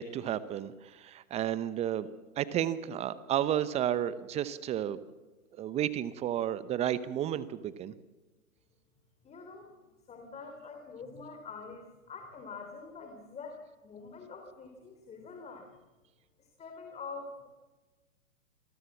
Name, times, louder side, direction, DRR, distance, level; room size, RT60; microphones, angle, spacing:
voice 1, 0.0-2.1 2.4-5.0 5.6-7.9, right 11 dB, 15° right, 16 dB, 0.8 m, -32 dB
voice 2, 9.2-9.8 10.1-15.7 16.4-17.5, left 4 dB, 15° left, 4 dB, 3.3 m, -45 dB
27.0 x 20.0 x 7.3 m, 1.2 s
figure-of-eight pair, 120°, 42 cm